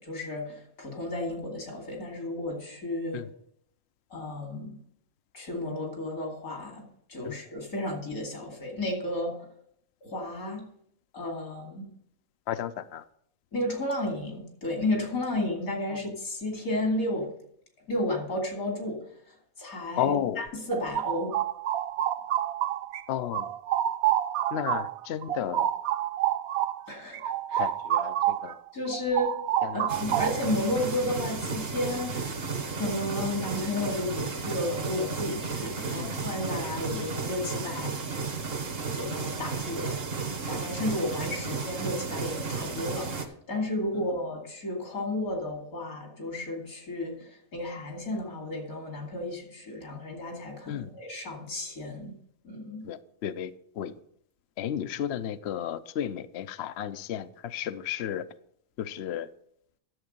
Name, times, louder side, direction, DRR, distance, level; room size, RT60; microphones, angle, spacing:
voice 1, 0.0-3.2 4.1-4.8 5.3-6.8 7.1-9.4 10.0-10.6 11.1-11.9 13.5-17.3 17.9-19.0 19.6-21.4 26.9-27.6 28.7-29.3 29.7-38.0 38.9-39.9 40.5-52.1 52.4-52.8, left 1 dB, 85° left, 2 dB, 3.0 m, -32 dB
voice 2, 12.5-13.0 15.9-16.0 20.0-20.4 23.1-23.5 24.5-25.7 27.6-28.6 29.6-29.9 35.8-36.2 36.9-37.1 43.9-44.1 50.7-50.9 52.8-53.9 54.6-58.3 58.8-59.3, left 10 dB, 60° left, 12 dB, 0.7 m, -33 dB
sound 1, 20.5-23.0 23.3-28.5 28.9-30.6, right 12 dB, 85° right, 1.1 m, -28 dB
sound 2, 29.9-43.3, right 4 dB, 45° right, 1.4 m, -33 dB
11.0 x 7.5 x 5.3 m, 0.68 s
omnidirectional pair, 1.5 m